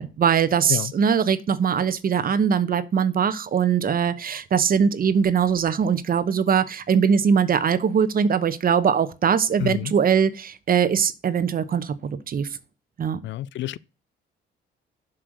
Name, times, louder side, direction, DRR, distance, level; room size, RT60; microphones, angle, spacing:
voice 1, 0.0-12.5 13.0-13.2, right 7 dB, 45° right, 0.9 m, -21 dB
voice 2, 9.6-9.9 13.2-13.8, left 14 dB, 70° left, 0.4 m, -28 dB
7.5 x 4.5 x 6.5 m
cardioid pair, 90°, 20 cm